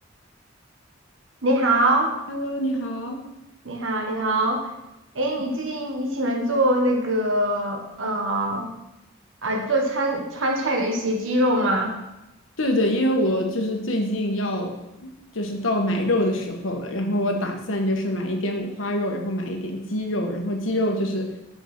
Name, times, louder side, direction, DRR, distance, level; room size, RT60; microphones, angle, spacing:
voice 1, 1.4-2.1 3.6-4.7 5.1-8.7 9.4-11.9, right 1 dB, 75° right, 2 dB, 1.4 m, -23 dB
voice 2, 2.3-3.2 12.6-14.8 15.0-21.3, left 1 dB, 75° left, 3 dB, 1.4 m, -25 dB
7.0 x 6.0 x 6.0 m, 0.93 s
head